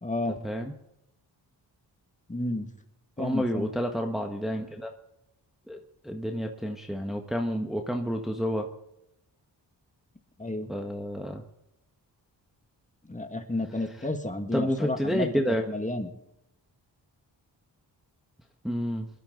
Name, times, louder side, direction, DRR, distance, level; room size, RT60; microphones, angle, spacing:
voice 1, 0.0-0.4 2.3-2.7 3.2-3.7 10.4-10.7 13.1-16.1, left 2 dB, 15° left, 6 dB, 2.1 m, -31 dB
voice 2, 3.2-4.9 5.7-8.7 10.7-11.4 13.9-14.1 14.5-15.6 18.6-19.1, equal, ahead, 2 dB, 1.5 m, -30 dB
21.0 x 12.5 x 4.0 m, 0.83 s
cardioid pair, 55°, 44 cm